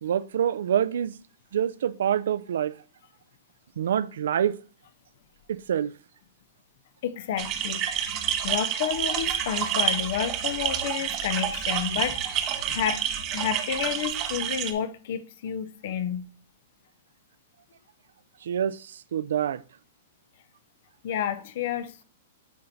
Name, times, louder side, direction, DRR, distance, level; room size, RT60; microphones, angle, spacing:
voice 1, 0.0-1.1 1.5-2.7 3.8-4.6 5.5-5.9 18.4-19.6, right 9 dB, 75° right, 0.3 m, -26 dB
voice 2, 7.0-7.9 8.4-13.0 13.3-16.3 21.0-22.0, left 9 dB, 50° left, 0.4 m, -30 dB
sound 1, 7.4-14.7, right 9 dB, 25° right, 0.6 m, -29 dB
9.3 x 4.4 x 2.6 m
hypercardioid pair, 170°, 0 cm